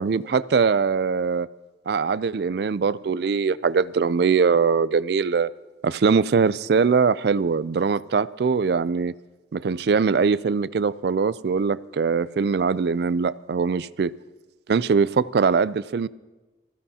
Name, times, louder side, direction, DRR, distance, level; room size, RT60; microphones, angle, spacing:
voice 1, 0.0-1.5 1.9-5.5 5.8-9.1 9.5-14.1 14.7-16.1, right 5 dB, 55° right, 0.4 m, -22 dB
25.0 x 15.5 x 2.8 m
head